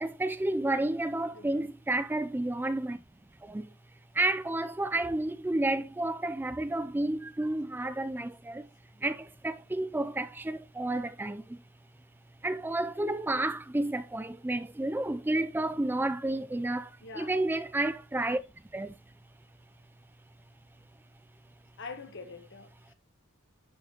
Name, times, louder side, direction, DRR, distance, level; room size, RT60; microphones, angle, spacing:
voice 1, 0.0-3.0 3.5-3.7 4.2-8.6 9.0-11.4 12.4-16.9 17.2-18.4 18.7-18.9, right 2 dB, 10° right, 0.3 m, -31 dB
voice 2, 1.3-1.7 17.0-17.3 21.8-22.9, left 4 dB, 55° left, 1.4 m, -44 dB
11.0 x 4.3 x 2.9 m
head